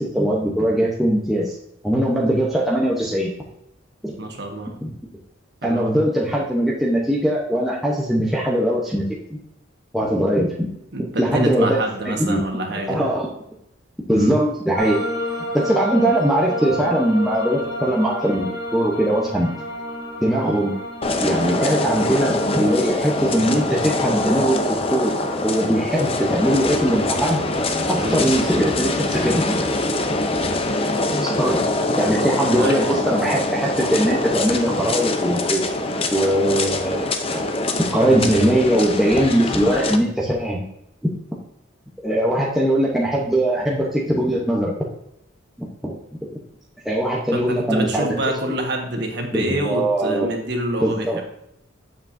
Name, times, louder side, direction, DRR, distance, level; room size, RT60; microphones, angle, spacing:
voice 1, 0.0-1.6 1.8-3.3 4.0-4.1 4.8-4.9 5.6-9.1 9.9-10.7 11.2-12.4 12.9-13.3 14.1-15.0 15.5-19.5 20.2-20.8 21.2-25.1 25.4-27.4 27.9-29.6 31.2-31.6 32.0-35.6 36.1-37.4 37.9-40.6 42.0-44.7 45.6-45.9 46.8-48.1 49.3-50.3 50.8-51.2, right 1 dB, ahead, -5 dB, 0.8 m, -21 dB
voice 2, 4.2-4.7 5.6-5.9 10.9-13.0 14.1-14.3 28.0-28.2 32.6-32.8 47.3-51.2, right 1 dB, 55° right, 3 dB, 1.4 m, -26 dB
sound 1, 14.7-32.5, equal, 55° left, 2.7 m, -33 dB
sound 2, 21.0-40.0, left 2 dB, 30° left, 0.6 m, -24 dB
8.6 x 7.0 x 2.6 m, 0.78 s
head